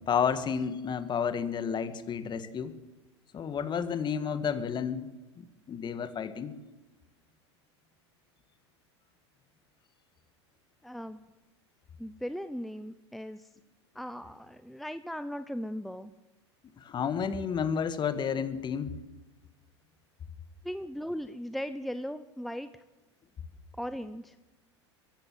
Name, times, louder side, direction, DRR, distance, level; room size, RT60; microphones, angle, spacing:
voice 1, 0.1-2.7 3.3-5.1 5.4-6.5 16.8-19.0, left 7 dB, 30° left, 12 dB, 1.9 m, -31 dB
voice 2, 10.8-11.2 12.0-13.5 13.9-16.1 20.6-22.7 23.8-24.3, equal, ahead, 12 dB, 0.8 m, -38 dB
23.0 x 15.0 x 7.7 m, 1.1 s
hypercardioid pair, 90°, 15 cm